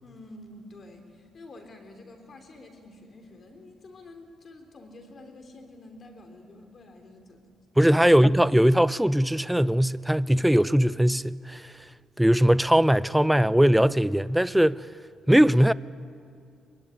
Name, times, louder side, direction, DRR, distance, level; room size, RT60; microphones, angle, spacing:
voice 1, 0.0-7.5 7.9-8.0, left 2 dB, 45° left, 3.2 m, -48 dB
voice 2, 7.8-11.7 12.2-14.8 15.3-15.7, equal, 5° right, 0.6 m, -20 dB
23.5 x 23.0 x 10.0 m
cardioid pair, 90°, 0 cm